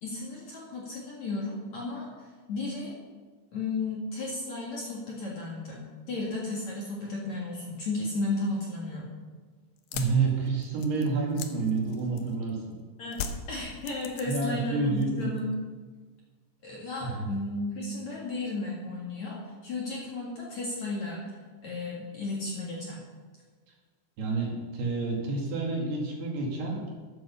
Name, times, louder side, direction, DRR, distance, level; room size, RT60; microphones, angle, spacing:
voice 1, 0.0-2.1 2.5-3.0 3.5-9.1 13.0-13.2 13.5-15.5 16.6-21.3 21.6-23.0, left 2 dB, 50° left, -4 dB, 2.7 m, -34 dB
sound 1, 9.8-12.5 13.1-14.7 15.0-15.5, left 7 dB, 75° left, 2.5 m, -39 dB
voice 2, 9.9-12.7 14.3-15.3 17.0-17.3 24.2-26.9, right 4 dB, 60° right, -2 dB, 4.1 m, -29 dB
11.0 x 9.4 x 7.1 m, 1.4 s
omnidirectional pair, 5.4 m